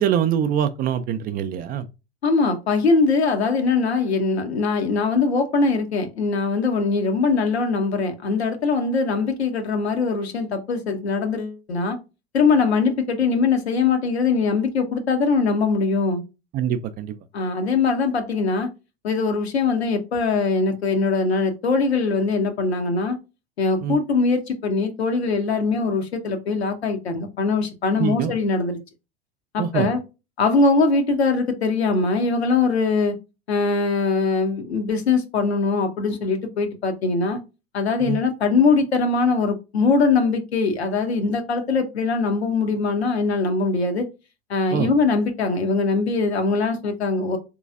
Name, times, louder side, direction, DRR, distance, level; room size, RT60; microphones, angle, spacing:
voice 1, 0.0-1.9 16.5-17.2 23.8-24.0 28.0-28.3 29.6-29.9 38.0-38.2 44.7-44.9, right 9 dB, 30° right, 0.4 m, -24 dB
voice 2, 2.2-12.0 12.3-16.2 17.3-18.7 19.0-23.2 23.6-28.8 29.5-30.0 30.4-33.2 33.5-37.4 37.7-44.0 44.5-47.4, left 4 dB, 75° left, 0.9 m, -21 dB
3.9 x 3.0 x 2.4 m
figure-of-eight pair, 80°, 32 cm